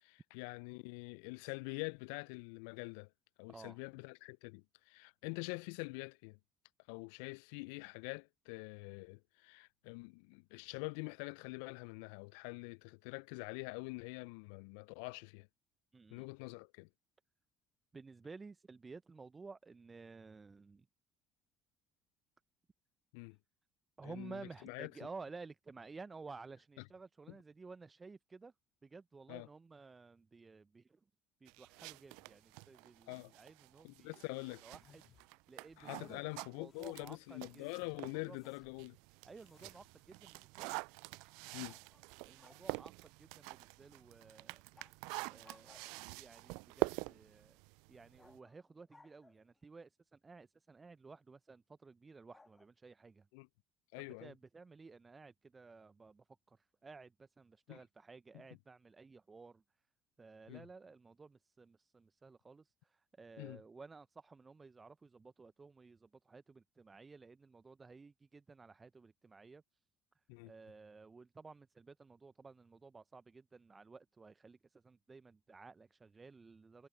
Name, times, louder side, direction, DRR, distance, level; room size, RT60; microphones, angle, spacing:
voice 1, 0.0-3.1 3.4-6.4 6.9-15.5 16.1-16.9 23.1-23.4 24.0-24.9 29.3-29.5 33.1-33.3 33.8-34.6 35.8-39.0 41.5-41.8 53.3-53.5 53.9-54.3 57.7-57.8 60.5-60.7 63.4-63.6 70.3-70.5, left 31 dB, 70° left, 0.5 m, -45 dB
voice 2, 15.9-16.3 17.9-20.9 24.0-28.5 28.8-31.0 31.4-34.2 34.5-38.4 39.2-40.8 42.2-44.6 45.3-47.6 47.9-53.3 54.0-59.6 60.2-69.6 70.4-76.9, right 4 dB, 25° right, 0.8 m, -55 dB
sound 1, 31.5-38.3 38.7-48.4, right 29 dB, 70° right, 0.5 m, -46 dB
sound 2, 34.7-35.3 35.7-36.2 36.6-37.2 37.5-38.9 39.3-39.9, left 9 dB, 45° left, 2.1 m, -67 dB
sound 3, 41.6-42.7 44.7-45.0 45.4-46.2 48.2-49.6 52.3-52.7, left 3 dB, 20° left, 2.2 m, -64 dB
figure-of-eight pair, 60°, 0 cm